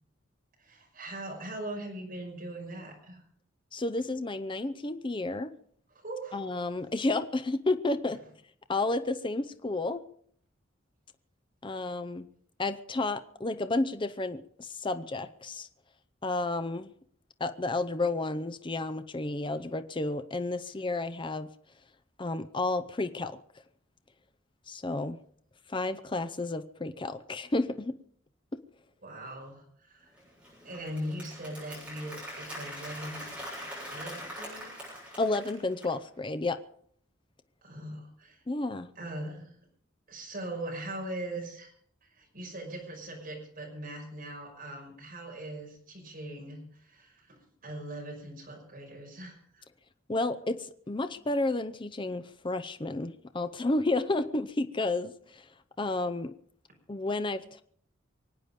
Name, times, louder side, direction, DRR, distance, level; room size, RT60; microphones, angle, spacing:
voice 1, 0.6-3.2 5.9-6.5 29.0-30.1 30.6-33.3 33.9-34.9 37.6-38.4 39.0-39.6 40.1-41.7 42.0-49.6, right 1 dB, 45° right, 5.6 m, -41 dB
voice 2, 3.7-5.6 6.3-8.2 8.7-10.1 11.6-12.3 12.6-15.7 16.2-16.9 17.4-21.5 22.2-23.4 24.7-25.2 25.7-28.0 35.2-36.6 38.5-38.9 50.1-55.5 55.8-56.3 56.9-57.6, left 2 dB, 25° left, 0.6 m, -31 dB
Applause, 30.2-36.0, equal, 5° right, 7.0 m, -43 dB
24.5 x 9.0 x 5.2 m
head